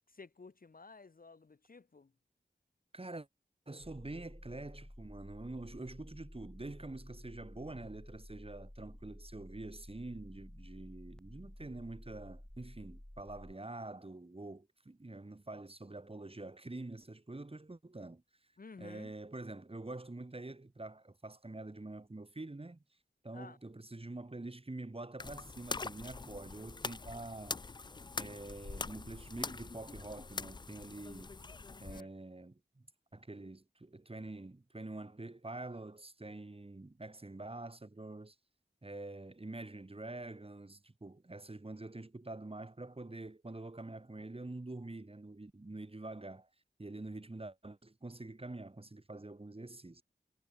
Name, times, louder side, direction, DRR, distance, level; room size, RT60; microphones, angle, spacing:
voice 1, 0.1-2.1 18.6-19.1 23.3-23.6 31.9-32.1, left 4 dB, 50° left, 1.1 m, -54 dB
voice 2, 2.9-3.3 3.7-18.2 18.8-22.8 23.2-27.6 28.1-31.3 31.8-32.9 33.1-38.3 38.8-46.5 46.8-50.0, right 2 dB, 30° right, 2.4 m, -46 dB
sound 1, 3.8-13.6, equal, 5° left, 0.8 m, -52 dB
sound 2, 25.2-32.0, left 4 dB, 25° left, 0.3 m, -43 dB
wide cardioid pair, 65°, 19 cm